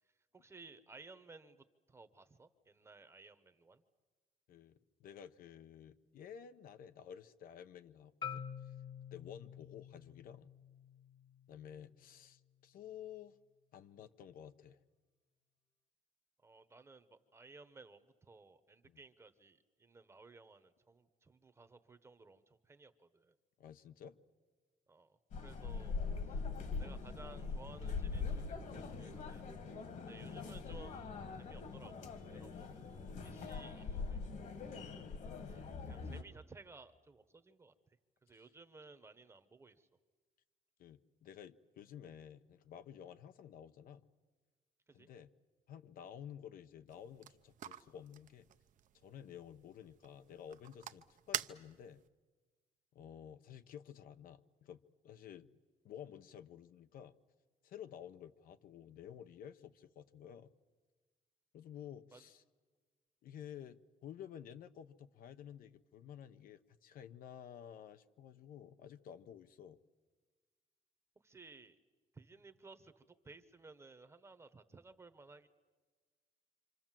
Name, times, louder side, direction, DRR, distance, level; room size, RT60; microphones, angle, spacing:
voice 1, 0.3-3.8 16.4-23.3 24.9-25.2 25.4-26.0 26.2-26.4 26.8-29.5 30.0-34.7 35.5-39.9 44.9-45.1 62.1-62.3 71.2-71.8 72.1-75.5, right 3 dB, 15° right, 11 dB, 1.0 m, -58 dB
voice 2, 4.5-8.7 9.1-10.5 11.5-13.4 13.7-14.8 18.8-19.0 23.6-24.2 26.0-26.2 29.9-30.3 32.4-33.0 35.0-35.3 38.3-38.4 40.8-44.1 44.9-45.3 45.7-48.5 49.0-52.0 52.9-55.6 55.8-57.1 57.6-60.5 61.5-62.4 63.2-69.8, left 9 dB, 75° left, 10 dB, 0.9 m, -53 dB
Marimba xylophone, 8.2-12.4, left 8 dB, 35° left, 1.2 m, -49 dB
sound 1, 25.3-36.2, left 4 dB, 55° left, 1.9 m, -42 dB
sound 2, 46.9-52.1, right 11 dB, 60° right, 0.8 m, -47 dB
26.5 x 26.5 x 7.5 m, 1.4 s
cardioid pair, 175°, 15 cm